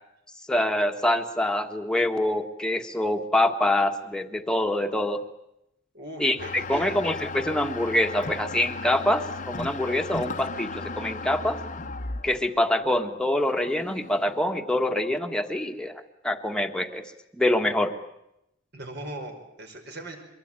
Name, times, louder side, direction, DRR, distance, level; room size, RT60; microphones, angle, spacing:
voice 1, 0.5-5.2 6.2-11.6 12.2-17.0 17.3-17.9, left 1 dB, 5° left, 4 dB, 1.5 m, -25 dB
voice 2, 5.9-7.0 18.7-20.2, right 1 dB, 60° right, 4 dB, 5.3 m, -39 dB
sound 1, 6.4-14.5, left 3 dB, 40° left, 1.0 m, -36 dB
24.0 x 22.5 x 9.0 m, 0.84 s
head